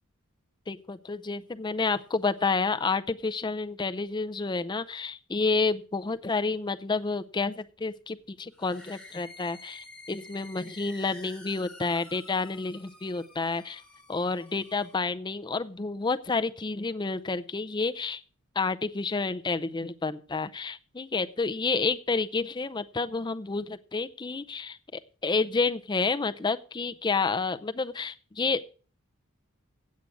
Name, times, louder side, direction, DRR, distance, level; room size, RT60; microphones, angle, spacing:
voice 1, 0.7-13.8 14.1-18.2 18.6-28.6, left 4 dB, 20° left, 11 dB, 0.5 m, -30 dB
sound 1, 8.5-15.1, left 2 dB, 5° left, 1.2 m, -50 dB
9.0 x 8.4 x 6.1 m, 0.39 s
head